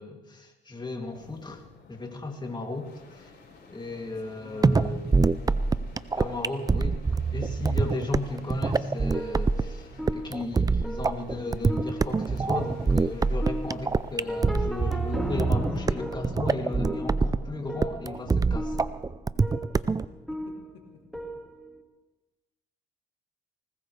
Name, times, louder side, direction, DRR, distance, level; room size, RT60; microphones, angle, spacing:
voice 1, 0.0-3.3 3.7-5.0 6.2-18.9, left 2 dB, 20° left, 2 dB, 2.8 m, -35 dB
sound 1, 1.0-16.1 17.9-18.3, left 4 dB, 60° left, 5.1 m, -52 dB
voice 2, 4.4-6.3 19.7-19.8 20.3-21.3, left 5 dB, 85° left, 2 dB, 2.7 m, -51 dB
sound 2, 4.6-20.1, right 4 dB, 20° right, 0.5 m, -25 dB
sound 3, 8.6-21.8, equal, ahead, 2.1 m, -37 dB
20.5 x 19.0 x 3.4 m, 1.1 s
cardioid pair, 90°, 20 cm